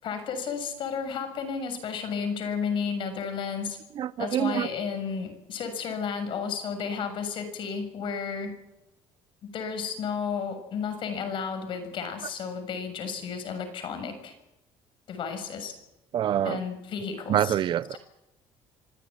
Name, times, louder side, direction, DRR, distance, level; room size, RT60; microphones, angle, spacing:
voice 1, 0.0-3.8 4.2-8.5 9.4-14.3 15.1-15.7 16.4-17.6, left 6 dB, 60° left, 8 dB, 6.9 m, -32 dB
voice 2, 3.9-4.7 16.1-16.6 17.3-18.0, right 10 dB, 55° right, 17 dB, 0.9 m, -26 dB
26.0 x 16.0 x 10.0 m, 0.93 s
cardioid pair, 115°, 10 cm